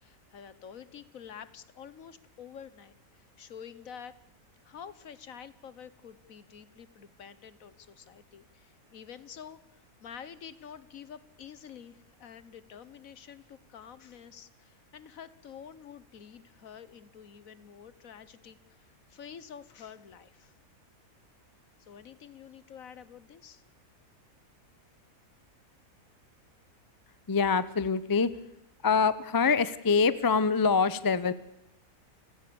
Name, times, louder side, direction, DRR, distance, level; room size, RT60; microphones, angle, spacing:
voice 1, 0.0-4.2 4.6-20.5 21.8-23.6, left 8 dB, 65° left, 16 dB, 1.4 m, -48 dB
voice 2, 27.3-28.3 28.8-31.3, left 5 dB, 25° left, 16 dB, 0.4 m, -25 dB
29.5 x 17.0 x 7.0 m, 0.87 s
omnidirectional pair, 1.6 m